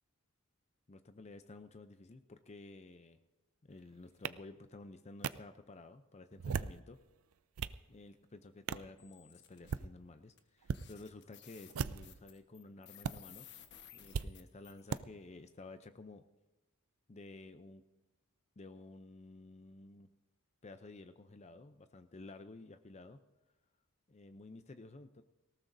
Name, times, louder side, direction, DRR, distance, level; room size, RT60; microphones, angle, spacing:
voice 1, 0.9-3.2 3.6-7.0 7.9-13.5 13.9-16.2 17.1-17.8 18.6-20.1 20.6-23.2 24.1-25.2, left 2 dB, 30° left, 10 dB, 0.5 m, -53 dB
sound 1, 4.2-4.3 5.2-5.3 6.3-6.8 7.3-7.8 8.7-8.9 9.5-9.9 10.6-10.8 11.7-12.2 13.0-13.1 14.1-14.3 14.9-15.0, right 6 dB, 70° right, 0.5 m, -37 dB
sound 2, 9.0-9.8 10.4-10.5 10.7-15.0, left 10 dB, 50° left, 1.3 m, -57 dB
19.0 x 18.0 x 2.7 m, 1.1 s
head